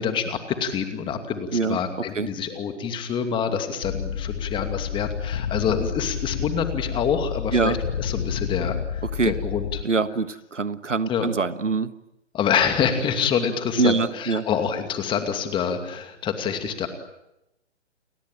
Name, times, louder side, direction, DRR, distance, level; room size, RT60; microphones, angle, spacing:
voice 1, 0.0-9.8 11.1-11.3 12.3-16.9, left 7 dB, 15° left, 7 dB, 2.5 m, -26 dB
sound 1, 3.8-9.8, left 8 dB, 50° left, 1.7 m, -30 dB
voice 2, 9.8-11.9 13.8-14.4, right 4 dB, 90° right, 14 dB, 1.6 m, -24 dB
30.0 x 21.5 x 9.1 m, 0.88 s
figure-of-eight pair, 135°, 36 cm